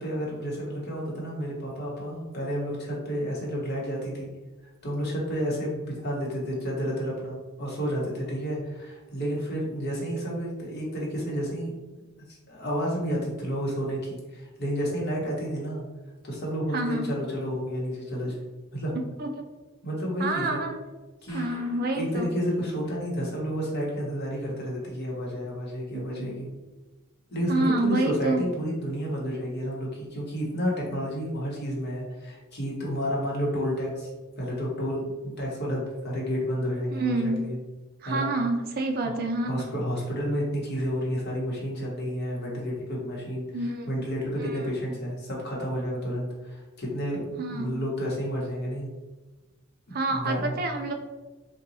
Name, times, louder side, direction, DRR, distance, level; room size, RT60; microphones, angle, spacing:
voice 1, 0.0-4.3 4.8-11.7 12.5-15.8 16.2-18.4 18.7-18.9 19.8-20.6 21.2-21.7 21.9-26.5 27.3-34.1 34.4-35.1 35.4-37.6 38.0-38.3 39.0-39.2 39.5-43.5 43.9-48.9 49.9-50.6, equal, 50° left, -4 dB, 1.0 m, -30 dB
voice 2, 16.7-17.1 19.2-19.5 20.2-20.8 21.3-22.3 25.9-26.4 27.5-28.5 36.9-37.5 38.0-39.7 43.5-43.9 44.4-44.6 47.4-47.8 49.9-50.9, right 2 dB, 45° right, 4 dB, 0.4 m, -28 dB
sound 1, 21.3-22.1 22.5-22.6 22.8-22.9 23.4-23.5, left 1 dB, 15° left, 0.8 m, -48 dB
2.8 x 2.3 x 4.0 m, 1.2 s
head